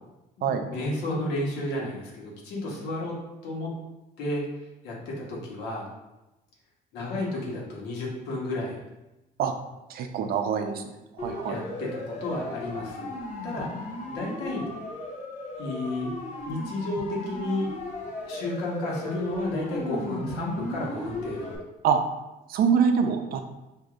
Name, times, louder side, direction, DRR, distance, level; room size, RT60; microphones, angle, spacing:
voice 1, 0.4-3.2 3.4-3.7 4.2-4.4 4.8-5.9 6.9-8.8 11.5-13.1 13.4-14.7 15.6-16.1 16.5-17.7 18.3-21.6, left 1 dB, 85° left, -3 dB, 1.2 m, -32 dB
voice 2, 9.9-10.8 11.2-11.6 21.8-22.0 22.5-23.4, right 7 dB, 65° right, 6 dB, 0.5 m, -24 dB
Siren, 11.2-21.6, left 2 dB, 45° left, 0.8 m, -36 dB
4.7 x 2.6 x 2.5 m, 0.99 s
cardioid pair, 110°, 17 cm